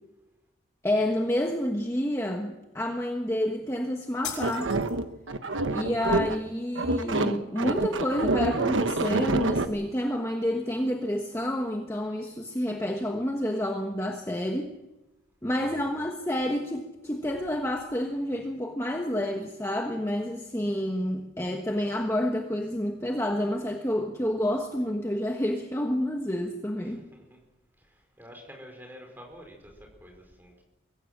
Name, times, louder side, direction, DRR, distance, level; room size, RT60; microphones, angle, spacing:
voice 1, 0.8-4.7 5.7-14.7 15.4-27.0, left 1 dB, 15° left, 2 dB, 1.3 m, -29 dB
sound 1, 4.2-5.3, left 8 dB, 75° left, 6.9 m, -39 dB
sound 2, 4.4-6.5 6.8-9.7, right 2 dB, 85° right, 1.3 m, -27 dB
voice 2, 15.6-16.0 26.8-27.4 27.8-30.6, equal, 10° right, 2 dB, 4.7 m, -49 dB
23.5 x 15.5 x 7.4 m, 1.0 s
head